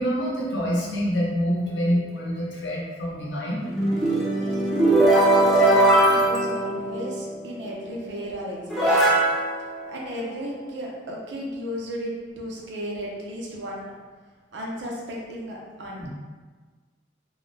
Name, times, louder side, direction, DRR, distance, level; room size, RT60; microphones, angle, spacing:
voice 1, 0.0-3.6 16.0-16.1, equal, 80° left, -5 dB, 0.8 m, -26 dB
sound 1, 3.6-7.4 8.2-8.3 8.7-10.6, right 1 dB, ahead, 0.3 m, -20 dB
voice 2, 5.6-9.1 9.9-13.9 14.5-16.1, equal, 75° right, -3 dB, 0.6 m, -34 dB
2.2 x 2.0 x 3.1 m, 1.4 s
head